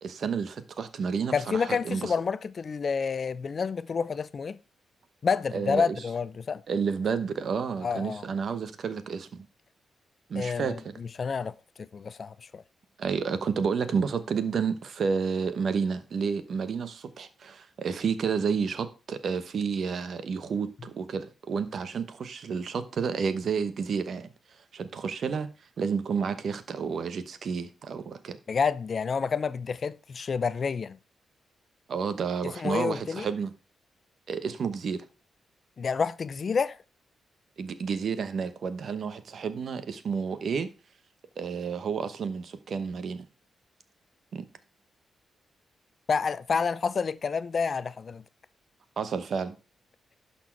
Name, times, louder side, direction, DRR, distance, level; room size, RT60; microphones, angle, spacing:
voice 1, 0.0-2.1 5.5-6.0 6.7-9.4 10.3-10.9 13.0-24.3 24.7-25.5 25.8-28.4 31.9-33.5 34.3-35.0 37.6-40.7 41.4-43.3 44.3-44.5 49.0-49.5, right 6 dB, 65° right, 1.0 m, -30 dB
voice 2, 1.3-4.6 5.2-6.6 7.8-8.3 10.4-12.6 28.5-31.0 32.6-33.3 35.8-36.8 46.1-48.2, left 5 dB, 55° left, 0.5 m, -29 dB
11.5 x 4.4 x 4.6 m
supercardioid pair, 55°, 0 cm